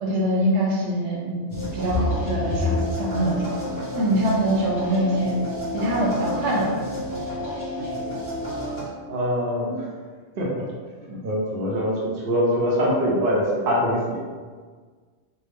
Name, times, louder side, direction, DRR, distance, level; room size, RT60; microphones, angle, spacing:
voice 1, 0.0-3.4 3.9-5.4 5.7-6.8, equal, 85° right, -4 dB, 1.1 m, -24 dB
sound 1, 1.5-8.8, left 1 dB, 15° left, 1.2 m, -28 dB
voice 2, 9.1-9.9 10.4-10.6 11.0-14.3, equal, 55° right, -4 dB, 0.9 m, -24 dB
3.4 x 2.3 x 3.4 m, 1.5 s
omnidirectional pair, 1.2 m